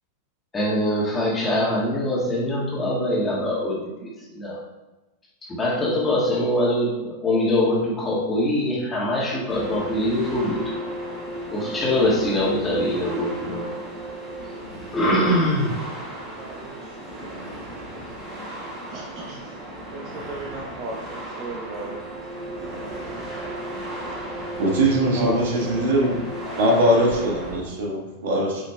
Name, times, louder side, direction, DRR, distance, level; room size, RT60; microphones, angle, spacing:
voice 1, 0.5-4.6 5.5-10.6 11.5-13.8 14.9-15.8, left 1 dB, 15° left, -5 dB, 1.6 m, -23 dB
sound 1, 9.5-27.6, right 1 dB, 20° right, 2.1 m, -35 dB
voice 2, 16.2-17.0 18.4-18.5 18.9-19.5 19.9-22.0 25.2-25.9, right 2 dB, 35° right, -1 dB, 0.7 m, -35 dB
voice 3, 24.6-26.2 26.6-28.6, right 1 dB, 55° right, 0 dB, 1.2 m, -21 dB
8.5 x 5.0 x 2.2 m, 1.1 s
figure-of-eight pair, 90°, 0 cm